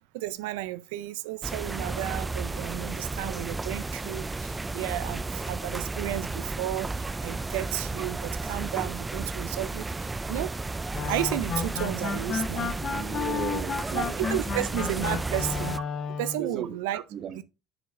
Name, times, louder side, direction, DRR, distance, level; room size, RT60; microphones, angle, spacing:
voice 1, 0.1-10.5 11.1-12.7 13.9-15.8 16.2-17.0 17.3-17.4, right 15 dB, 90° right, 0.4 m, -33 dB
sound 1, 1.4-15.8, right 3 dB, 15° right, 0.4 m, -33 dB
sound 2, 10.9-16.5, left 6 dB, 45° left, 1.0 m, -32 dB
voice 2, 12.9-14.7 16.4-17.4, right 8 dB, 50° right, 1.1 m, -36 dB
7.1 x 7.0 x 3.6 m
supercardioid pair, 110°, 0 cm